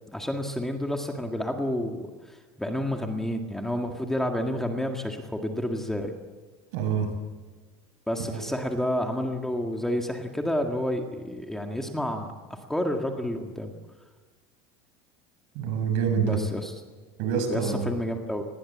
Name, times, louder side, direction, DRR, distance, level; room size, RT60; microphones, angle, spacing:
voice 1, 0.1-2.0 2.3-6.1 8.1-12.3 12.7-13.7 16.2-16.7 17.5-18.4, left 1 dB, 5° left, 3 dB, 1.9 m, -29 dB
voice 2, 6.7-7.1 8.3-8.4 15.5-16.4 17.2-17.9, right 7 dB, 65° right, 6 dB, 6.6 m, -26 dB
28.0 x 21.0 x 8.6 m, 1.4 s
cardioid pair, 160°, 13 cm